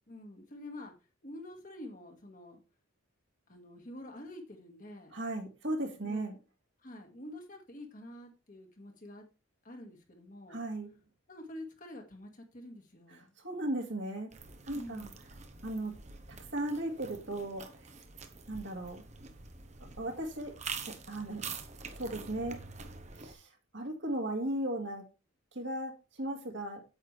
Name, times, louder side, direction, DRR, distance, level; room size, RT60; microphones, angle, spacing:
voice 1, 0.1-0.9 1.2-2.6 3.5-5.2 6.0-6.4 6.8-9.2 9.6-10.6 11.3-13.3 14.7-15.2, left 1 dB, 40° left, 3 dB, 1.8 m, -47 dB
voice 2, 5.1-6.4 10.5-10.9 13.4-14.3 14.7-15.1 15.6-16.0 16.5-17.7 18.5-19.0 20.0-20.6 20.9-21.4 22.0-22.6 23.2-23.5 23.7-25.1 25.5-25.9 26.2-26.8, right 1 dB, 60° right, 2 dB, 2.1 m, -36 dB
sound 1, 14.3-23.3, right 5 dB, 35° right, 1.0 m, -46 dB
8.9 x 8.1 x 3.3 m, 0.29 s
head